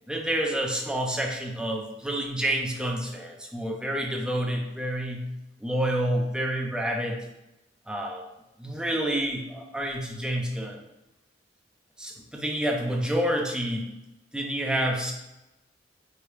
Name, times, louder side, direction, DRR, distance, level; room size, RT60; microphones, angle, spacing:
voice 1, 0.1-5.3 5.6-7.2 7.9-8.2 8.6-10.8 12.0-13.9 14.3-15.1, right 1 dB, 5° right, 1 dB, 0.4 m, -28 dB
4.7 x 2.1 x 3.2 m, 0.93 s
head